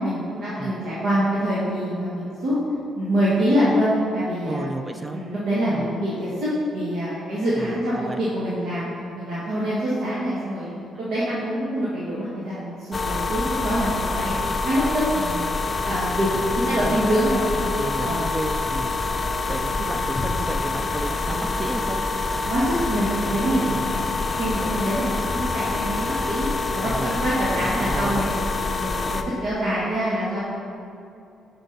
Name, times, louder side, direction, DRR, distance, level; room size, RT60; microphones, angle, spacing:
voice 1, 0.0-2.5 3.0-4.7 5.1-8.9 9.2-10.7 11.0-14.3 14.6-15.5 15.8-16.3 16.5-18.3 22.4-23.6 23.9-24.1 24.4-26.5 26.7-28.4 28.7-30.4, equal, 80° right, -10 dB, 1.7 m, -25 dB
voice 2, 4.5-5.2 5.7-5.9 7.6-8.2 16.3-17.1 17.8-19.0 19.5-22.0 23.6-23.9 26.8-28.3, right 2 dB, 20° right, 6 dB, 0.5 m, -33 dB
sound 1, 12.9-29.2, left 3 dB, 30° left, 0.5 m, -26 dB
6.3 x 5.2 x 5.4 m, 2.7 s
cardioid pair, 90°, 0 cm